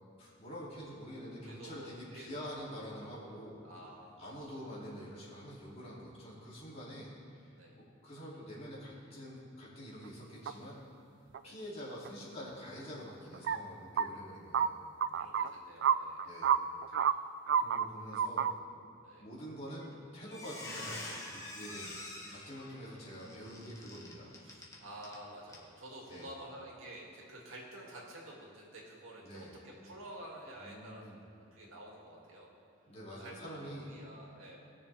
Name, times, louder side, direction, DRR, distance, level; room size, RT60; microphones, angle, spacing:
voice 1, 0.2-3.6 4.2-10.8 11.4-14.8 16.2-16.6 16.9-17.1 17.6-18.5 19.2-22.0 22.3-24.3 26.1-26.3 29.2-29.5 30.6-31.2 32.9-33.9, equal, 30° left, -8 dB, 2.8 m, -46 dB
voice 2, 1.1-2.5 3.6-4.6 7.6-7.8 11.4-11.6 15.1-16.2 19.0-19.3 22.7-23.7 24.4-31.1 31.5-32.5 33.2-34.7, right 1 dB, 90° right, -3 dB, 2.3 m, -50 dB
sound 1, 10.5-10.6 11.3-11.4 12.1-12.2 13.3-13.6 14.0-14.1 14.5-14.7 15.0-15.5 15.8-15.9 16.2-17.1 17.5-17.9 18.1-18.5, right 8 dB, 60° right, 0.3 m, -28 dB
Squeak, 19.7-19.9 20.2-25.2 25.5-25.7 26.1-26.2, left 1 dB, 15° left, 1.4 m, -46 dB
19.5 x 6.6 x 3.4 m, 2.5 s
head